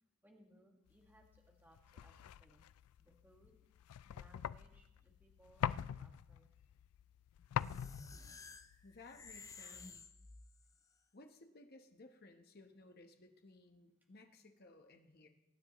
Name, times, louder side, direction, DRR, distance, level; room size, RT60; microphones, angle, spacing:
voice 1, 0.2-2.7 3.0-3.6 4.0-6.5, right 1 dB, 10° right, 0 dB, 1.7 m, -67 dB
sound 1, 1.1-10.0, left 9 dB, 90° left, 0.3 m, -44 dB
sound 2, 7.6-10.8, left 4 dB, 15° left, 0.4 m, -54 dB
voice 2, 8.8-10.0 11.1-15.3, left 2 dB, 45° left, 5 dB, 1.1 m, -59 dB
23.0 x 9.7 x 3.1 m, 0.95 s
head